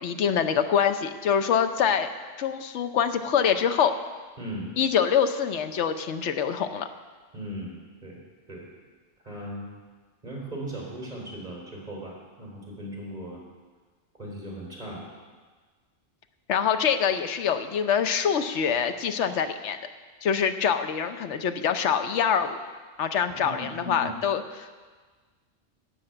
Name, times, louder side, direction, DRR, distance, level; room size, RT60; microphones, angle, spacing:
voice 1, 0.0-2.1 2.4-3.9 4.8-6.9 16.5-19.8 20.2-22.6 23.0-24.9, left 7 dB, 80° left, 8 dB, 1.1 m, -25 dB
voice 2, 4.4-4.7 7.3-7.7 8.0-8.2 8.5-8.6 9.2-9.7 10.2-13.4 14.2-15.0 23.3-24.1, right 1 dB, 35° right, -3 dB, 3.8 m, -37 dB
11.5 x 7.2 x 8.9 m, 1.4 s
omnidirectional pair, 1.2 m